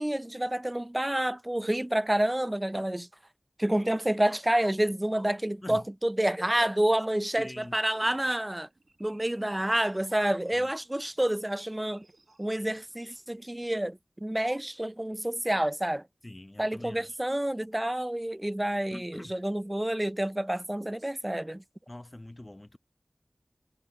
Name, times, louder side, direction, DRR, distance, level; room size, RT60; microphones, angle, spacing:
voice 1, 0.0-3.1 3.6-8.7 9.0-12.0 12.4-16.0 16.6-21.6, right 1 dB, 20° right, 0.4 m, -29 dB
sound 1, 7.3-13.6, right 2 dB, 70° right, 6.5 m, -59 dB
voice 2, 7.4-7.8 10.5-10.7 16.2-17.1 18.9-19.4 21.9-22.8, left 1 dB, 30° left, 0.7 m, -43 dB
wide cardioid pair, 50°, 0 cm